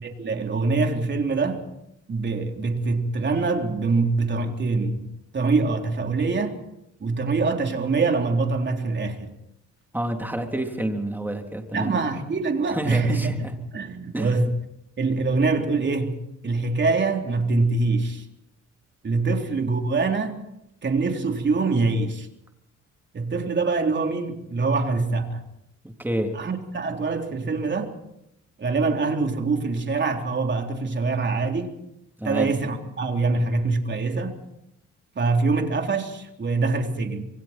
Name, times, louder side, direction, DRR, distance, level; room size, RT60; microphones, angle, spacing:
voice 1, 0.0-1.6 2.1-5.1 5.3-6.6 7.0-9.3 11.7-13.5 13.7-14.5 15.0-18.3 19.0-20.4 20.8-22.3 23.1-25.4 26.3-28.0 28.6-31.7 32.2-34.4 35.2-37.3, right 3 dB, 35° right, 3.7 m, -24 dB
voice 2, 9.9-12.0 12.7-13.5 14.1-14.3 26.0-26.3 32.2-32.5, right 1 dB, 5° right, 3.5 m, -28 dB
27.0 x 23.0 x 4.5 m
cardioid pair, 90°, 30 cm